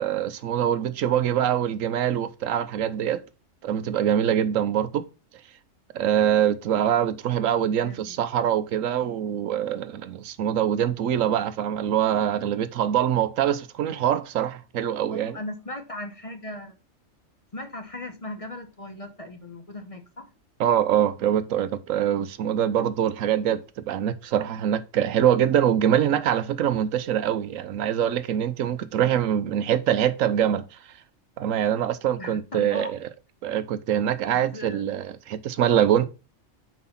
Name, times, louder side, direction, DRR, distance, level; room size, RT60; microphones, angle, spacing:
voice 1, 0.0-3.2 3.6-5.1 5.9-15.4 20.6-30.6 31.4-33.1 33.4-36.0, right 10 dB, 85° right, 1.1 m, -24 dB
voice 2, 7.8-8.1 15.1-16.7 17.5-20.3 32.2-32.9 34.5-34.8, left 2 dB, 30° left, 0.9 m, -38 dB
5.9 x 4.8 x 5.7 m
omnidirectional pair, 1.3 m